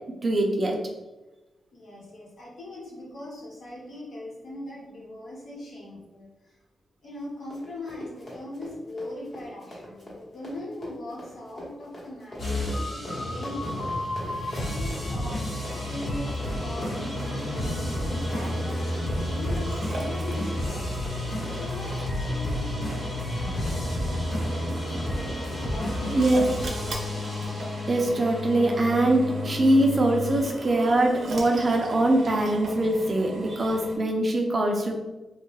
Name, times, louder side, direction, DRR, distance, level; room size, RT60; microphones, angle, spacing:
voice 1, 0.2-0.8 26.1-26.5 27.9-34.9, right 1 dB, 35° right, 2 dB, 0.4 m, -23 dB
voice 2, 1.7-6.5 7.0-14.0 14.6-15.4 15.7-21.1 21.5-24.5 25.7-27.2, left 1 dB, 60° left, -4 dB, 1.1 m, -40 dB
Run, 7.1-22.5, left 1 dB, 30° left, 1.0 m, -43 dB
sound 1, 12.4-30.4, left 1 dB, 80° left, 1.4 m, -31 dB
Drill, 15.5-34.0, right 1 dB, 75° right, 0.6 m, -38 dB
2.9 x 2.3 x 3.1 m, 1.1 s
wide cardioid pair, 140°, 0 cm